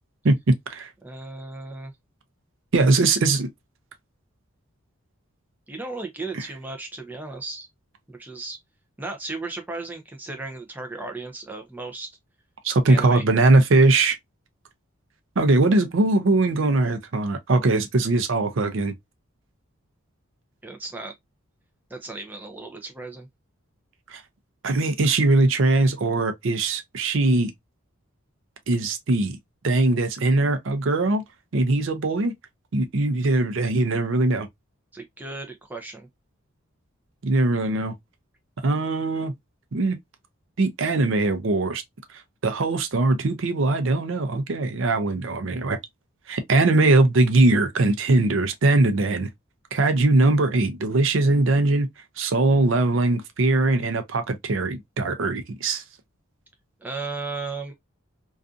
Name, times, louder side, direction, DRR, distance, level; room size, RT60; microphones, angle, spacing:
voice 1, 0.2-0.9 2.7-3.5 6.3-6.5 12.6-14.2 15.4-18.9 24.1-24.2 24.6-27.5 28.7-29.4 29.6-31.2 31.5-32.3 32.7-34.5 37.2-37.9 38.6-39.3 39.7-40.0 40.6-41.8 42.4-45.8 46.3-49.3 49.7-51.9 52.2-55.8, right 2 dB, 60° right, 0.5 m, -21 dB
voice 2, 1.0-1.9 5.7-7.7 8.1-8.6 9.0-12.1 12.9-13.2 20.6-21.1 21.9-23.3 34.9-36.1 56.8-57.7, right 3 dB, 10° right, 0.4 m, -35 dB
2.6 x 2.4 x 2.4 m
head